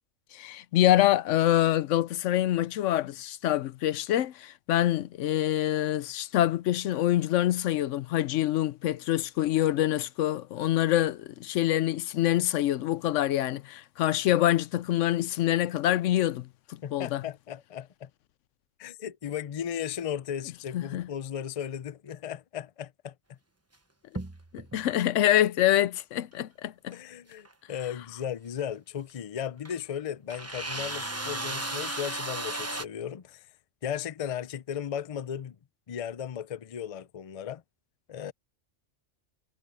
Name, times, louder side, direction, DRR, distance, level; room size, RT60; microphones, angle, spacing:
voice 1, 0.3-17.2 20.7-21.1 24.5-26.9, left 13 dB, 85° left, 0.9 m, -26 dB
voice 2, 16.8-18.1 18.8-23.4 26.9-33.5 33.8-35.6 35.9-37.6 38.1-38.3, left 9 dB, 45° left, 0.5 m, -36 dB
sound 1, 24.1-24.9 26.9-27.0 27.4-27.5 29.1-29.2 29.6-29.7 30.3-32.8, right 2 dB, 15° right, 1.0 m, -35 dB
omnidirectional pair, 1.3 m